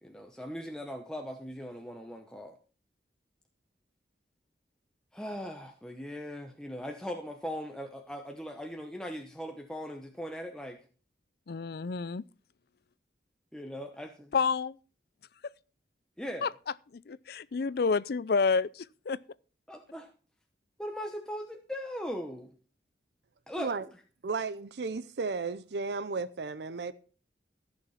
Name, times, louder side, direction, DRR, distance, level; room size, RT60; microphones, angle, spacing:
voice 1, 0.0-2.5 5.1-10.8 13.5-14.3 16.2-16.5 19.7-20.1 20.8-22.5 23.5-23.7, equal, 5° left, 0.9 m, -39 dB
voice 2, 11.5-12.2 14.3-14.8 16.4-16.5 17.1-19.2, left 5 dB, 60° left, 0.4 m, -29 dB
voice 3, 24.2-26.9, right 4 dB, 70° right, 0.6 m, -34 dB
14.5 x 6.3 x 5.7 m
head